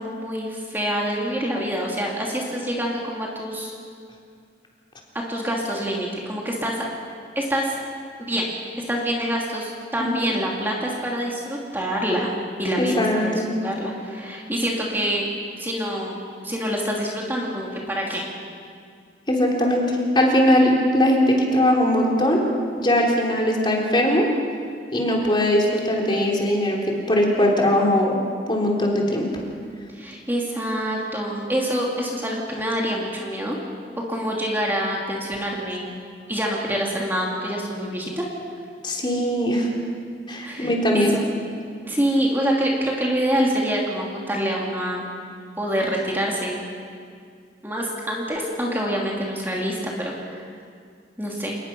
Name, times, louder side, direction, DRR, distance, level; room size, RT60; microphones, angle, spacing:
voice 1, 0.0-3.7 5.3-6.8 7.3-7.7 8.2-8.5 8.9-12.3 12.6-13.3 13.6-15.3 15.5-16.2 16.4-18.2 29.9-33.6 34.1-35.9 36.3-38.2 40.4-41.2 41.8-45.0 45.6-46.6 47.6-50.4 51.2-51.6, equal, 10° right, -2 dB, 2.7 m, -26 dB
voice 2, 10.0-10.4 12.8-13.5 19.3-22.4 22.8-24.3 24.9-26.8 27.1-28.2 28.5-29.3 38.8-39.7 40.3-41.1, left 1 dB, 25° left, -1 dB, 3.7 m, -20 dB
28.0 x 19.5 x 6.1 m, 2.2 s
head